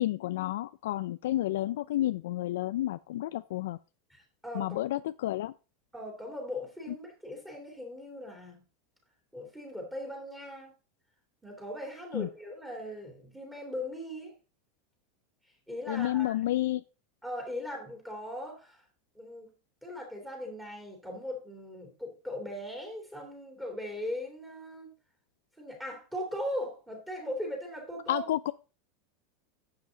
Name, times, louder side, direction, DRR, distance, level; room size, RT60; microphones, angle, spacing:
voice 1, 0.0-3.8 4.5-5.5 12.1-12.3 15.9-16.8 28.1-28.5, left 14 dB, 80° left, 13 dB, 0.4 m, -30 dB
voice 2, 4.1-4.8 5.9-8.6 9.3-10.7 11.4-14.3 15.7-16.3 17.2-18.8 19.2-19.5 19.8-24.9 25.6-28.3, equal, 5° right, 1 dB, 2.7 m, -39 dB
10.5 x 7.7 x 3.9 m, 0.32 s
supercardioid pair, 175°, 0 cm